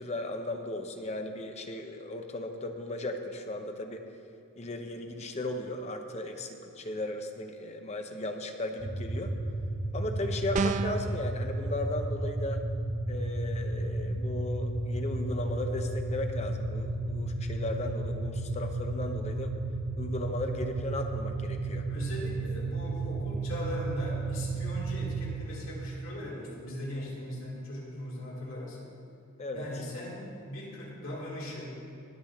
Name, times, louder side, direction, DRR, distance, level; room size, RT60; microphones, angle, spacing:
voice 1, 0.0-4.1 4.6-9.3 9.9-12.6 13.1-19.5 20.0-21.9 29.4-29.6, left 1 dB, 30° left, 5 dB, 0.8 m, -36 dB
sound 1, 8.8-25.3, right 2 dB, 55° right, 1.8 m, -33 dB
sound 2, 10.5-11.1, right 4 dB, 35° right, 0.3 m, -28 dB
voice 2, 21.9-28.8 29.5-31.8, left 1 dB, 70° left, -5 dB, 3.1 m, -39 dB
20.0 x 7.2 x 3.6 m, 2.6 s
head